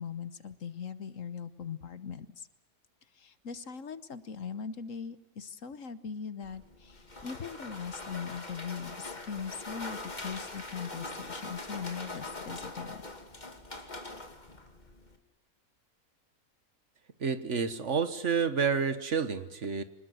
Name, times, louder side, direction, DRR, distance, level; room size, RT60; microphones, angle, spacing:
voice 1, 0.0-2.5 3.1-13.0, left 6 dB, 60° left, 13 dB, 1.5 m, -40 dB
sound 1, 6.4-15.2, left 2 dB, 30° left, 2.5 m, -43 dB
voice 2, 17.2-19.8, right 6 dB, 55° right, 12 dB, 1.6 m, -29 dB
25.5 x 20.0 x 7.9 m, 0.99 s
omnidirectional pair, 1.6 m